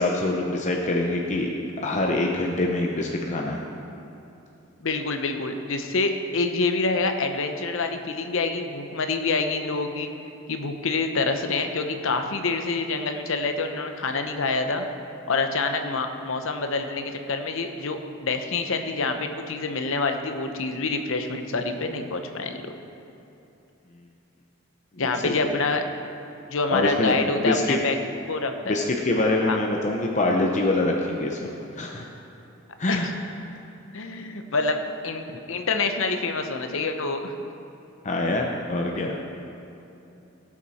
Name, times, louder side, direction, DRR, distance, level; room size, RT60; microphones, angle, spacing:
voice 1, 0.0-1.5 1.8-3.6 25.0-25.5 26.7-27.8 28.7-31.5 31.8-32.1 32.8-33.1 33.5-33.6 38.0-39.2, left 2 dB, 35° left, 0 dB, 0.7 m, -25 dB
voice 2, 4.8-10.1 10.5-14.9 15.3-22.7 25.0-25.8 26.5-28.0 28.3-28.8 29.4-29.6 32.9-33.1 33.9-37.3, left 3 dB, 70° left, 6 dB, 0.9 m, -27 dB
17.0 x 7.3 x 4.2 m, 2.9 s
head